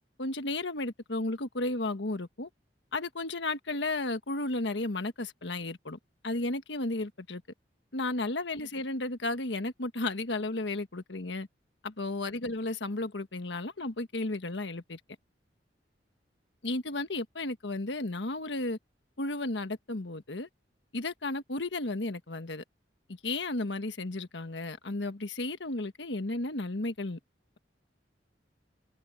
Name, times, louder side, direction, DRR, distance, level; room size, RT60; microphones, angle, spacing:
voice 1, 0.2-2.5 2.9-6.0 6.2-7.4 7.9-11.5 11.8-15.0 16.6-18.8 19.2-20.5 20.9-22.6 23.2-27.2, left 2 dB, 80° left, 1.4 m, -33 dB
head